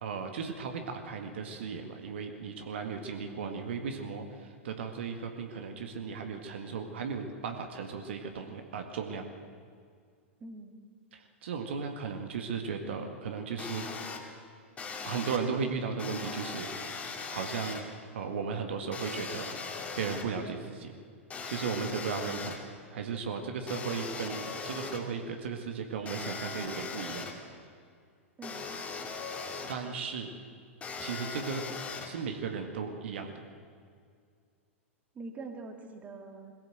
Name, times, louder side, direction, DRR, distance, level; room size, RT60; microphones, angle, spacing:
voice 1, 0.0-9.3 11.1-13.9 15.0-16.7 17.3-17.8 18.1-19.6 20.0-20.9 21.5-22.6 22.9-27.3 29.7-30.3 31.0-31.6 32.0-33.4, right 5 dB, 55° right, 5 dB, 1.9 m, -36 dB
voice 2, 10.4-10.8 28.4-28.7 35.1-36.5, right 3 dB, 20° right, 5 dB, 2.1 m, -44 dB
sound 1, 13.6-14.2 14.8-15.4 16.0-17.8 18.9-20.2 21.3-22.6 23.7-25.0 26.1-27.3 28.4-29.7 30.8-32.1, left 4 dB, 20° left, 2.6 m, -39 dB
22.0 x 16.0 x 7.9 m, 2.2 s
figure-of-eight pair, 95°, 7 cm